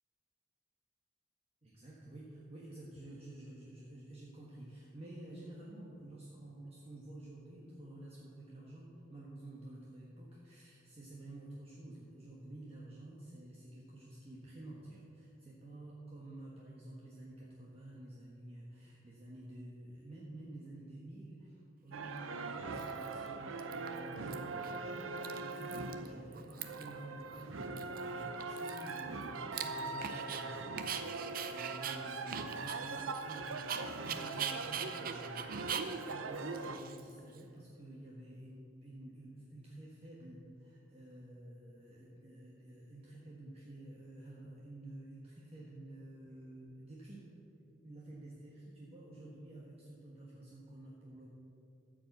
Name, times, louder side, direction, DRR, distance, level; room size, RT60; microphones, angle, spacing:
voice 1, 1.6-33.0 33.3-47.2 47.8-51.3, right 1 dB, 30° right, -5 dB, 1.3 m, -51 dB
sound 1, 21.9-36.8, right 3 dB, 90° right, 0.7 m, -41 dB
Dog, 22.0-22.1 22.8-23.3 23.6-24.3 24.6-24.8 25.0-26.1 26.3-27.0 27.3-27.4 27.8-30.4 30.8-37.4, right 8 dB, 45° right, 0.6 m, -42 dB
13.5 x 5.1 x 7.9 m, 2.7 s
head